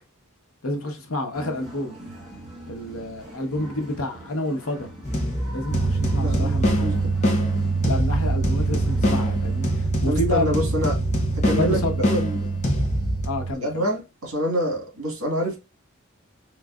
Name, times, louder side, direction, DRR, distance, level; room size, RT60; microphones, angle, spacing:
voice 1, 0.6-2.0 2.7-4.9 5.5-6.9 7.9-9.7 10.0-10.5 11.5-12.1 13.2-13.9, left 1 dB, 75° left, 1.0 m, -29 dB
sound 1, 1.3-9.9, right 1 dB, ahead, 1.2 m, -43 dB
sound 2, 5.0-13.3, left 1 dB, 30° left, 0.7 m, -25 dB
sound 3, 5.7-13.5, right 4 dB, 55° right, 0.8 m, -26 dB
voice 2, 6.2-7.1 10.1-11.0 11.3-11.8 12.1-12.6 13.6-15.6, equal, 85° right, 1.7 m, -26 dB
3.9 x 3.1 x 2.4 m
head